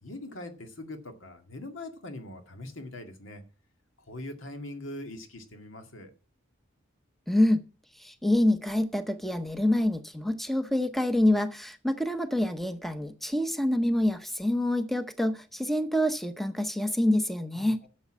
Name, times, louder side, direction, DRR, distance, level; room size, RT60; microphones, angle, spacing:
voice 1, 0.0-3.4 4.0-6.1 17.6-17.9, left 1 dB, 80° left, 5 dB, 2.0 m, -42 dB
voice 2, 7.3-7.6 8.0-17.8, left 1 dB, ahead, 9 dB, 0.7 m, -26 dB
11.0 x 7.1 x 7.3 m, 0.37 s
head